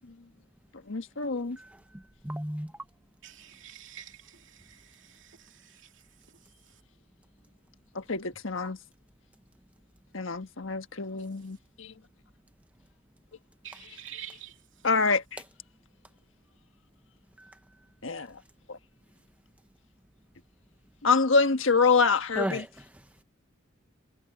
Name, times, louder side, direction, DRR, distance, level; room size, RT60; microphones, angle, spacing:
voice 1, 0.9-1.6 7.9-8.8 10.1-11.9 14.8-15.4 18.0-18.4 18.7-18.8 21.0-22.6, left 4 dB, 75° left, 1.4 m, -26 dB
voice 2, 1.9-2.7 8.6-8.7 17.4-17.5 22.4-22.7, right 1 dB, 5° right, 0.6 m, -34 dB
voice 3, 3.2-5.9 13.6-14.6, right 10 dB, 70° right, 2.9 m, -47 dB
head